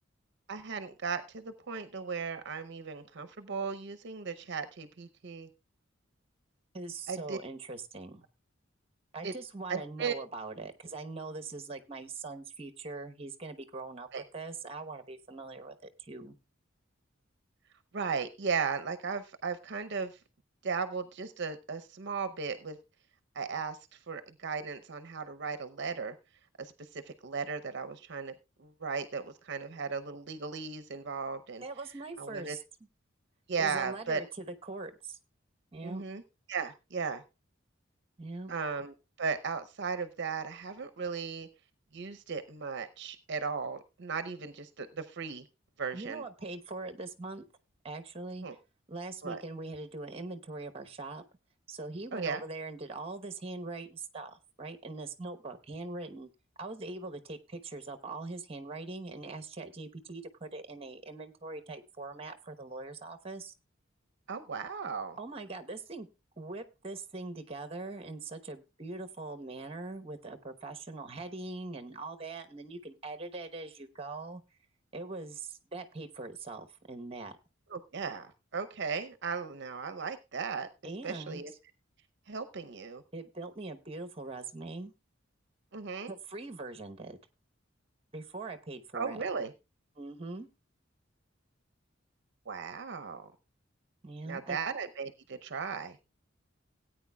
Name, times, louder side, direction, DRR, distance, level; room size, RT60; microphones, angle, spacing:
voice 1, 0.5-5.5 7.1-7.4 9.2-9.3 9.7-10.1 14.1-14.2 17.9-20.2 20.6-22.8 23.3-26.2 26.6-31.6 32.2-32.6 33.5-34.2 35.8-36.2 36.5-37.2 38.5-41.5 41.9-45.4 45.8-46.2 48.4-48.6 49.2-49.4 52.1-52.4 64.3-65.2 77.7-80.7 81.0-81.5 82.3-83.0 85.7-86.1 88.9-89.5 92.5-93.3 94.3-96.0, right 5 dB, 60° right, 10 dB, 0.7 m, -36 dB
voice 2, 6.7-8.2 9.1-16.4 31.6-32.6 33.6-35.2 35.7-36.0 38.2-38.5 45.9-47.4 47.8-48.5 48.9-51.2 51.7-56.3 56.6-63.5 65.2-66.1 66.4-74.4 74.9-77.3 80.8-81.4 83.1-84.9 86.1-87.2 88.1-89.2 90.0-90.5 94.0-94.6, right 3 dB, 30° right, 8 dB, 1.0 m, -42 dB
17.5 x 9.0 x 2.3 m, 0.26 s
head